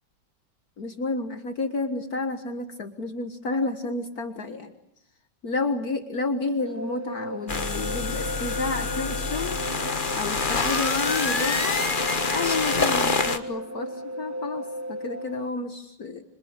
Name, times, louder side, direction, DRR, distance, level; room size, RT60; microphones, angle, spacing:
voice 1, 0.8-4.7 5.4-9.6 10.2-11.9 12.3-16.2, left 3 dB, 55° left, 8 dB, 2.0 m, -30 dB
sound 1, 6.6-15.5, equal, 10° right, 1.2 m, -35 dB
sound 2, 7.5-13.4, left 4 dB, 30° left, 1.4 m, -26 dB
27.0 x 25.5 x 8.1 m, 0.68 s
omnidirectional pair, 1.9 m